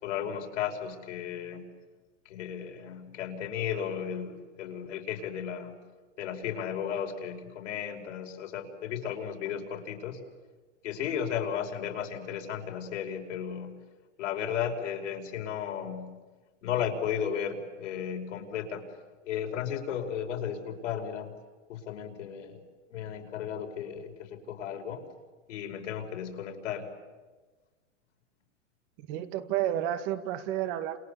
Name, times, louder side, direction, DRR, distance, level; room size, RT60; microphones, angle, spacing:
voice 1, 0.0-1.7 2.3-5.7 6.2-10.2 10.8-13.8 14.2-16.1 16.6-18.8 19.3-21.3 21.7-22.6 22.9-25.0 25.5-26.9, left 8 dB, 80° left, 5.3 m, -34 dB
voice 2, 29.0-31.0, right 12 dB, 45° right, 2.1 m, -31 dB
30.0 x 28.5 x 7.0 m
supercardioid pair, 155°, 37 cm